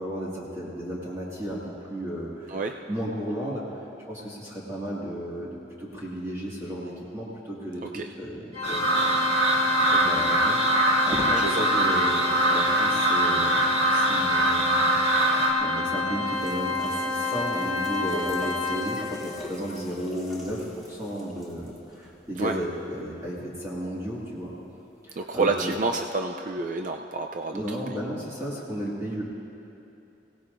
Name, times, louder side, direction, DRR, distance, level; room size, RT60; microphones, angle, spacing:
voice 1, 0.0-5.5 5.8-7.9 8.2-9.6 9.9-15.0 15.6-24.5 25.0-25.7 27.5-29.2, equal, 15° right, -7 dB, 1.9 m, -34 dB
Organ, 8.5-19.3, left 4 dB, 35° left, 1.3 m, -28 dB
sound 1, 8.6-15.5, right 2 dB, 70° right, 2.2 m, -23 dB
sound 2, 16.3-23.7 24.4-24.5, equal, ahead, 2.6 m, -44 dB
voice 2, 25.2-27.8, right 3 dB, 45° right, 4 dB, 0.4 m, -29 dB
23.0 x 17.5 x 2.6 m, 2.8 s
head